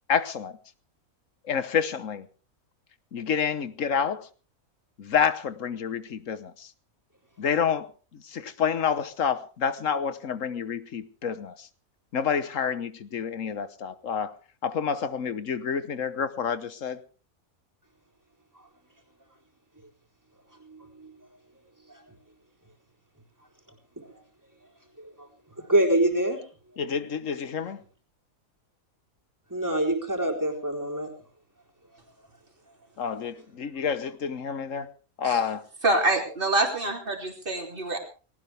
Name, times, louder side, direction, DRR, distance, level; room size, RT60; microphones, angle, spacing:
voice 1, 0.1-0.6 1.5-2.3 3.1-4.3 5.0-6.7 7.4-11.7 12.1-14.3 14.6-17.0 26.8-27.8 33.0-34.9 35.2-35.6, left 7 dB, 65° left, 1.4 m, -28 dB
voice 2, 20.6-21.1 25.0-25.1 25.6-26.4 29.5-31.1, right 1 dB, 15° right, 3.9 m, -25 dB
voice 3, 35.8-38.0, right 2 dB, 40° right, 3.5 m, -25 dB
19.5 x 17.5 x 3.5 m
omnidirectional pair, 1.5 m